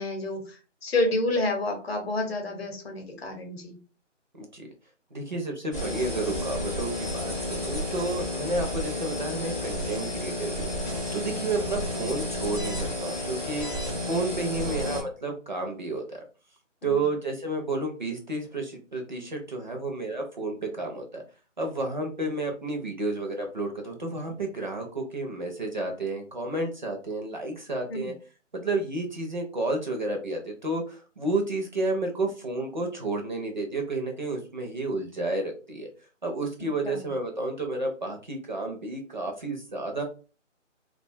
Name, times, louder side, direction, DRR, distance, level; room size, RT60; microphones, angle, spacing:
voice 1, 0.0-3.8 16.8-16.9 27.9-28.1 36.8-37.0, left 2 dB, 55° left, 3 dB, 0.8 m, -29 dB
voice 2, 4.4-4.7 5.1-13.7 14.1-16.2 16.8-21.2 21.6-28.1 28.5-35.9 36.2-40.0, right 2 dB, 40° right, 2 dB, 0.4 m, -31 dB
sound 1, 5.7-15.0, left 1 dB, 15° left, 0.5 m, -31 dB
2.4 x 2.2 x 2.5 m, 0.35 s
figure-of-eight pair, 150°, 37 cm